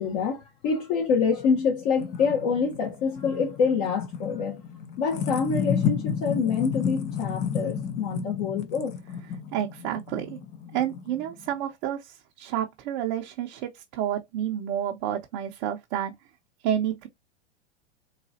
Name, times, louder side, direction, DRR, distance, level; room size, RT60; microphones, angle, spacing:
voice 1, 0.0-4.6 5.0-9.0, left 5 dB, 45° left, 1.0 m, -26 dB
sound 1, 1.4-11.5, left 7 dB, 20° left, 0.4 m, -32 dB
voice 2, 9.5-10.4 10.7-16.1 16.6-17.1, right 10 dB, 45° right, 0.7 m, -30 dB
3.9 x 2.4 x 2.8 m
hypercardioid pair, 135°, 34 cm